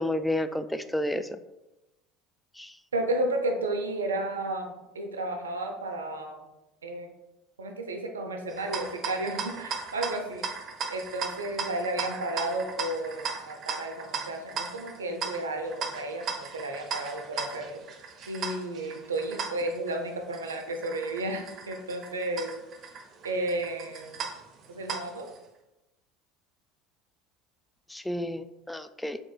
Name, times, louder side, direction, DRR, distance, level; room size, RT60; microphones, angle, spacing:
voice 1, 0.0-1.4 2.6-2.7 27.9-29.2, left 1 dB, 5° left, 10 dB, 0.4 m, -31 dB
voice 2, 2.9-6.4 6.8-7.1 7.6-10.5 10.9-17.8 18.2-22.5 23.2-24.2 24.7-25.3, right 2 dB, 85° right, 4 dB, 0.6 m, -32 dB
sound 1, 8.5-25.4, right 5 dB, 45° right, 0.7 m, -37 dB
6.2 x 3.8 x 2.3 m, 0.97 s
hypercardioid pair, 75°, 0 cm